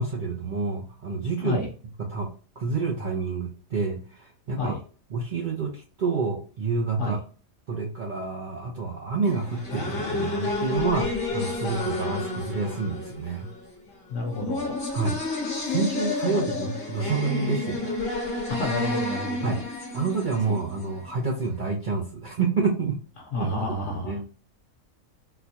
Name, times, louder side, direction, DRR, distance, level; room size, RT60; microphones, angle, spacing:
voice 1, 0.0-1.6 2.1-2.3 2.6-4.7 5.1-7.2 7.7-13.5 14.9-15.2 15.6-17.9 19.4-19.6 19.9-23.0 23.4-23.5 24.0-24.2, right 4 dB, 55° right, -1 dB, 0.5 m, -28 dB
sound 1, 9.2-21.1, left 3 dB, 40° left, 1.0 m, -31 dB
voice 2, 14.1-14.7 16.2-16.5 18.5-19.5 20.5-20.6 23.2-24.2, left 2 dB, 65° left, 1 dB, 0.9 m, -29 dB
4.1 x 2.2 x 2.7 m, 0.38 s
omnidirectional pair, 1.5 m